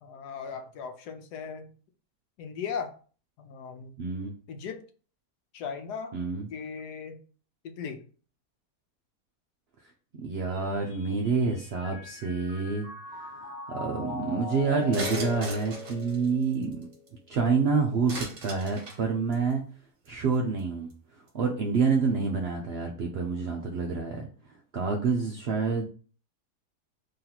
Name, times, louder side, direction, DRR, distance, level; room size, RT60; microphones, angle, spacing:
voice 1, 0.0-1.7 2.4-2.9 3.4-3.9 4.5-4.8 5.5-6.1 6.5-7.2 7.6-8.0, left 6 dB, 85° left, 6 dB, 1.2 m, -37 dB
voice 2, 4.0-4.3 6.1-6.4 10.2-12.9 13.2-16.9 17.3-19.6 20.1-20.9 21.3-24.3 24.7-25.9, right 4 dB, 75° right, 1 dB, 0.5 m, -28 dB
Mallet percussion, 10.5-17.0, left 5 dB, 45° left, 1.1 m, -39 dB
sound 1, 14.9-17.1 18.1-19.0 19.3-19.5 20.1-20.2 20.3-20.6 20.9-21.0, right 2 dB, 50° right, 1.4 m, -39 dB
3.1 x 2.9 x 3.9 m, 0.41 s
omnidirectional pair, 1.7 m